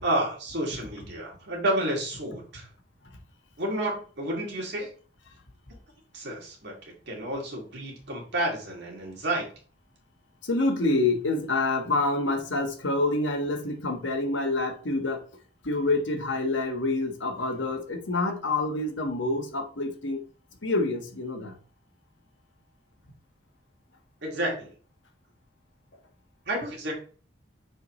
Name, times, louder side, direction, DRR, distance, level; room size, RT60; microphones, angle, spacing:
voice 1, 0.0-2.7 3.6-4.9 6.1-9.5 24.2-24.7 26.5-26.9, right 1 dB, 60° right, 2.5 m, -30 dB
voice 2, 10.4-15.2 15.6-20.2 20.6-21.6, left 2 dB, 80° left, 1.4 m, -27 dB
6.9 x 4.6 x 3.1 m
head